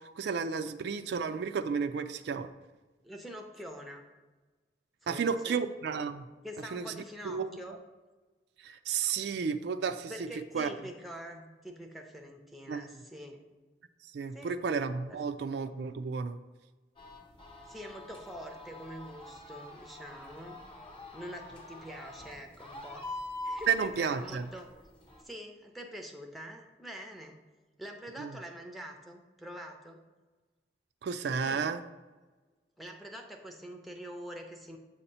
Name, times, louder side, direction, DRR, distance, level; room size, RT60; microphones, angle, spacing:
voice 1, 0.2-2.5 5.1-6.3 6.7-7.5 8.6-10.3 10.5-10.7 12.7-12.8 14.1-16.4 23.7-24.5 28.2-28.4 31.0-31.8, right 6 dB, 65° right, 9 dB, 0.3 m, -32 dB
voice 2, 3.0-4.0 5.0-5.6 6.4-7.8 10.1-13.4 14.3-14.5 15.1-15.2 17.7-20.6 21.1-23.1 23.4-24.7 25.2-27.4 27.8-30.0 31.4-31.7 32.8-34.8, equal, ahead, 2 dB, 0.6 m, -45 dB
sound 1, 17.0-25.2, left 2 dB, 30° left, 0.8 m, -45 dB
7.8 x 2.8 x 5.4 m, 1.2 s
head